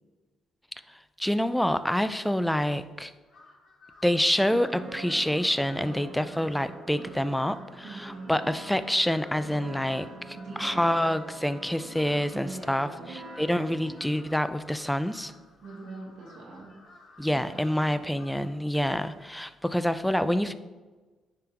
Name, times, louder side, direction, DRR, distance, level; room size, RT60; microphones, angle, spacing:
voice 1, 0.9-3.1 4.0-15.3 17.2-20.5, equal, 5° left, 12 dB, 0.4 m, -27 dB
Crow, 3.2-18.6, left 2 dB, 60° left, 2.0 m, -55 dB
sound 1, 4.4-14.2, right 2 dB, 55° right, 1.3 m, -44 dB
voice 2, 7.8-8.3 10.3-11.1 12.3-13.1 15.6-16.7 17.2-18.2, right 2 dB, 75° right, -3 dB, 1.6 m, -43 dB
9.8 x 3.6 x 2.9 m, 1.3 s
supercardioid pair, 70°, 0 cm